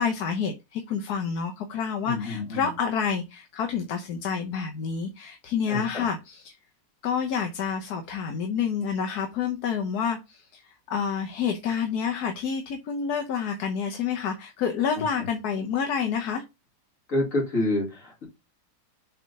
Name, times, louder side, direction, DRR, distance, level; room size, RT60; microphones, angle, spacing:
voice 1, 0.0-6.5 7.0-16.4, left 7 dB, 65° left, 1.3 m, -28 dB
voice 2, 2.1-2.7 5.7-6.0 17.1-18.2, left 1 dB, 45° left, 2.7 m, -28 dB
7.4 x 3.5 x 4.0 m
omnidirectional pair, 2.0 m